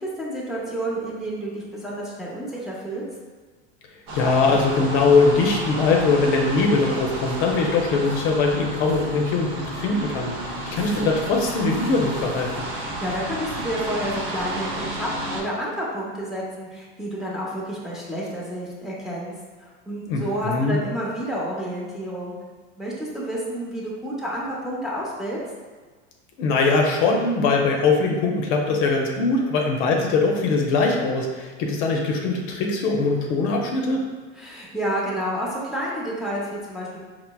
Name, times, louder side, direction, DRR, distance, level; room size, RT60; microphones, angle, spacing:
voice 1, 0.0-3.0 12.7-19.3 19.6-22.3 22.8-25.4 34.4-37.0, equal, ahead, -7 dB, 0.7 m, -30 dB
voice 2, 4.1-12.5 20.1-20.8 26.4-34.0, left 3 dB, 65° left, 0 dB, 0.6 m, -21 dB
sound 1, 4.1-15.4, right 1 dB, 65° right, 0.8 m, -32 dB
4.4 x 2.1 x 2.2 m, 1.4 s
supercardioid pair, 105°, 35 cm